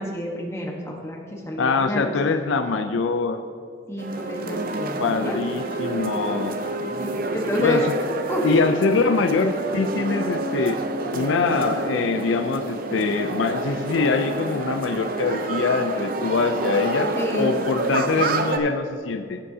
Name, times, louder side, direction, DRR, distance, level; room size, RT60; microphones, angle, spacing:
voice 1, 0.0-2.3 3.9-5.3 6.8-7.8 8.3-8.4 17.2-17.5, equal, 15° left, -2 dB, 1.2 m, -29 dB
voice 2, 1.6-3.4 5.0-6.6 7.6-7.9 8.4-10.8 11.1-19.4, left 4 dB, 70° left, 8 dB, 0.4 m, -23 dB
sound 1, 4.0-18.6, right 2 dB, 45° right, 0.6 m, -28 dB
14.5 x 7.7 x 2.8 m, 2.2 s
head